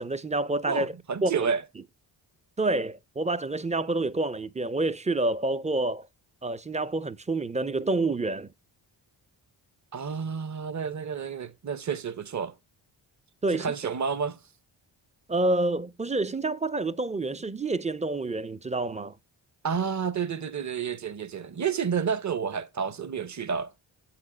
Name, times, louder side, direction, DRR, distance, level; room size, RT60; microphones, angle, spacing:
voice 1, 0.0-0.9 1.2-1.5 2.6-6.1 6.4-8.5 13.4-13.7 15.3-19.2, right 2 dB, 15° right, 0.5 m, -28 dB
voice 2, 0.7-1.6 9.9-12.5 13.5-14.4 19.6-23.7, right 6 dB, 35° right, 0.8 m, -30 dB
8.3 x 4.3 x 4.9 m
cardioid pair, 65°, 47 cm